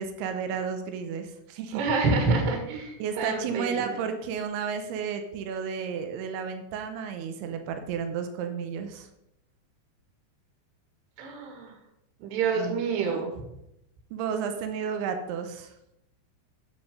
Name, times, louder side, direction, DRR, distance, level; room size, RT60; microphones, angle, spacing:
voice 1, 0.0-1.8 3.0-9.1 12.5-13.3 14.1-15.7, right 6 dB, 85° right, 6 dB, 2.2 m, -32 dB
voice 2, 1.7-4.0 11.2-11.7 12.2-13.5, right 4 dB, 65° right, 2 dB, 3.7 m, -27 dB
9.1 x 7.1 x 5.3 m, 0.84 s
omnidirectional pair, 5.7 m